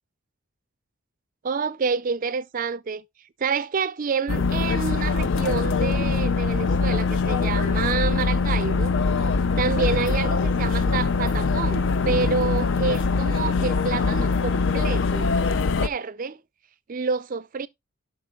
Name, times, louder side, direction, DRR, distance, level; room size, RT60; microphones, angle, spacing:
voice 1, 1.4-3.0 3.4-9.0 9.6-15.3 15.7-16.4 16.9-17.7, right 5 dB, 40° right, 0.4 m, -28 dB
sound 1, 4.3-15.9, left 4 dB, 55° left, 0.5 m, -23 dB
16.5 x 5.8 x 2.3 m
head